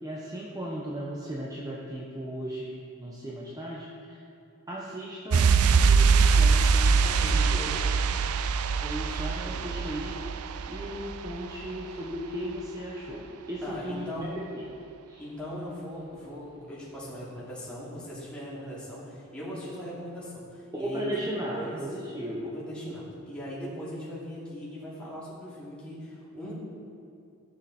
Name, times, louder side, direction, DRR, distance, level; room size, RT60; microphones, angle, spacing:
voice 1, 0.0-2.7 3.0-4.2 4.7-7.8 8.8-14.1 14.5-14.6 15.1-15.2 20.7-22.6, equal, 15° right, -5 dB, 1.0 m, -36 dB
sound 1, 5.3-11.8 12.1-12.2, right 5 dB, 80° right, 0.4 m, -23 dB
voice 2, 7.0-8.0 9.1-9.7 13.6-14.4 15.2-21.8 22.4-26.5, equal, 5° left, -9 dB, 2.9 m, -39 dB
14.0 x 7.0 x 4.3 m, 2.6 s
head